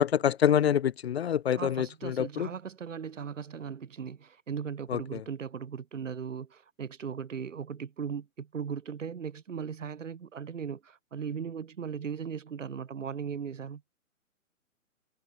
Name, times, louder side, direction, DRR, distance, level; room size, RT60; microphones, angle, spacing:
voice 1, 0.0-2.5 4.9-5.2, left 9 dB, 50° left, 0.9 m, -26 dB
voice 2, 1.5-13.8, right 7 dB, 60° right, 5.6 m, -38 dB
figure-of-eight pair, 135°, 42 cm